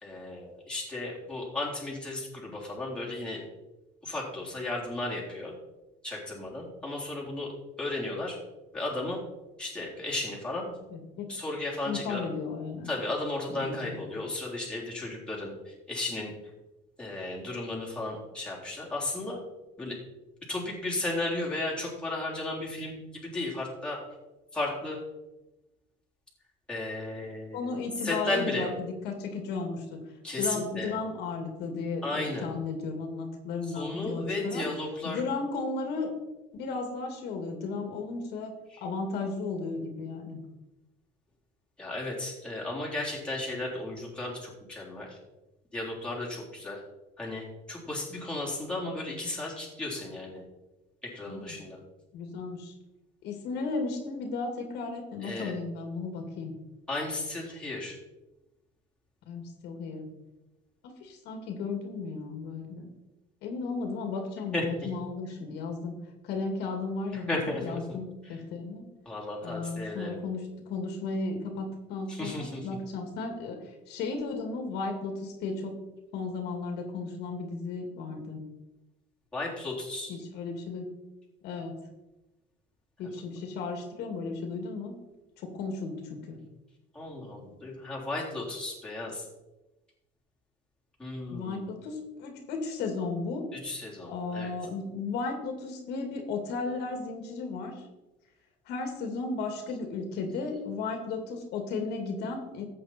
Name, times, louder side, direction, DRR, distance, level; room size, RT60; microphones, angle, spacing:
voice 1, 0.0-3.4 4.0-5.5 6.0-7.5 7.8-8.4 8.7-9.2 9.6-10.8 11.3-12.2 12.8-16.3 17.0-19.4 19.8-20.0 20.5-24.0 24.5-25.0 26.7-27.7 28.0-28.7 30.2-30.9 32.0-32.5 33.6-35.2 38.7-38.8 41.8-45.2 45.7-46.8 47.2-50.4 51.0-51.8 55.2-55.5 56.9-58.0 64.5-64.9 67.1-67.8 68.2-68.4 69.1-70.2 72.1-72.7 79.3-80.2 83.0-83.1 86.9-89.3 91.0-91.7 93.5-94.5, left 2 dB, 5° left, -5 dB, 3.7 m, -34 dB
voice 2, 10.9-11.3 11.8-12.9 13.5-14.1 27.5-30.0 30.4-34.7 35.0-36.1 36.5-38.5 38.8-40.4 51.2-51.6 52.1-52.7 53.2-56.5 59.3-60.1 60.8-62.9 63.4-65.9 66.2-68.9 69.4-75.8 76.1-78.4 80.1-80.9 81.4-81.8 83.0-85.0 85.4-86.4 91.3-93.5 94.1-97.7 98.7-102.6, left 4 dB, 70° left, 4 dB, 2.3 m, -34 dB
14.0 x 8.3 x 4.4 m, 1.0 s
cardioid pair, 145°, 18 cm